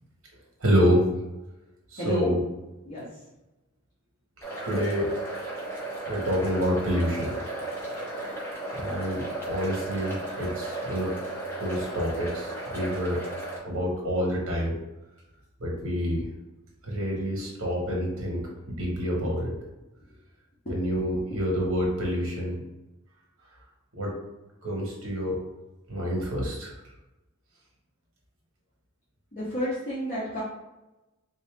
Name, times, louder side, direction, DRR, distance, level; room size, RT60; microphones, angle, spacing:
voice 1, 0.6-1.1 1.9-2.4 4.6-5.1 6.0-7.4 8.7-11.1 11.6-13.2 13.6-14.8 15.6-16.3 16.8-19.5 20.7-22.6 23.9-24.1 24.6-25.4 25.9-26.7, equal, 65° right, -2 dB, 1.3 m, -27 dB
voice 2, 2.0-2.3 2.8-3.0 19.2-19.3 20.6-20.7 21.3-21.4 29.3-30.4, left 1 dB, 40° left, -10 dB, 1.1 m, -31 dB
sound 1, 4.4-13.6, right 2 dB, 10° left, 0.9 m, -35 dB
3.4 x 2.8 x 3.6 m, 1.0 s
head